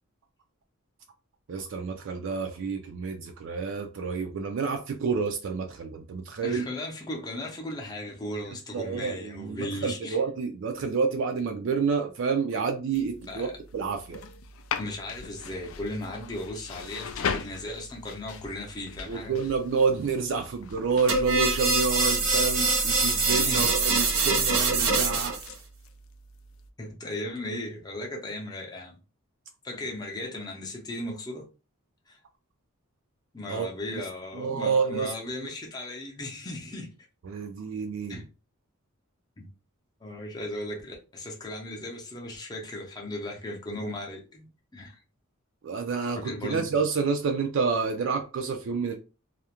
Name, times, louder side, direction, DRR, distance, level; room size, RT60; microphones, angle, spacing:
voice 1, 1.5-6.6 8.7-13.5 13.7-14.2 19.1-25.4 33.5-34.0 34.3-35.1 37.2-38.2 45.6-49.0, right 5 dB, 60° right, 0.3 m, -29 dB
voice 2, 6.4-10.2 13.3-13.5 14.8-19.3 23.5-23.7 26.8-29.0 29.6-31.4 32.1-32.2 33.3-36.9 38.1-38.3 39.4-39.5 40.0-45.0 46.2-46.7, left 1 dB, 20° left, 0.5 m, -36 dB
sound 1, 12.9-26.7, left 6 dB, 70° left, 0.3 m, -40 dB
sound 2, 21.1-25.5, right 3 dB, 75° right, 0.7 m, -24 dB
2.3 x 2.0 x 2.9 m
head